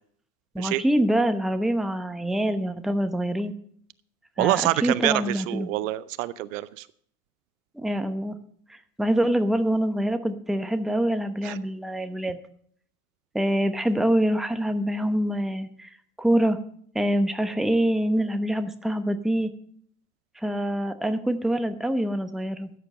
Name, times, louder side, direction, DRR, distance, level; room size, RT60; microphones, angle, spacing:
voice 1, 0.5-3.6 4.4-5.7 7.7-8.4 8.7-12.4 13.3-15.9 16.2-16.6 16.9-19.5 20.4-22.7, right 1 dB, ahead, 9 dB, 0.9 m, -25 dB
voice 2, 4.4-6.8 11.4-11.6, right 15 dB, 60° right, 18 dB, 0.6 m, -26 dB
13.5 x 9.3 x 5.5 m, 0.63 s
figure-of-eight pair, 75°, 45 cm